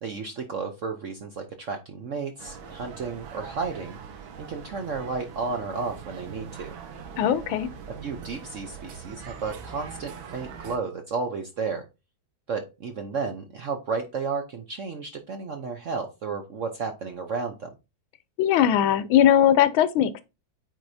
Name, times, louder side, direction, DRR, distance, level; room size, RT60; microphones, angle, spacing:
voice 1, 0.0-4.0 4.4-6.7 8.0-11.9 12.5-17.7, right 4 dB, 60° right, 0.8 m, -32 dB
sound 1, 2.4-10.8, right 6 dB, 75° right, 1.8 m, -42 dB
voice 2, 7.2-7.7 18.4-20.2, left 10 dB, 85° left, 1.5 m, -20 dB
8.8 x 4.7 x 2.7 m
omnidirectional pair, 2.2 m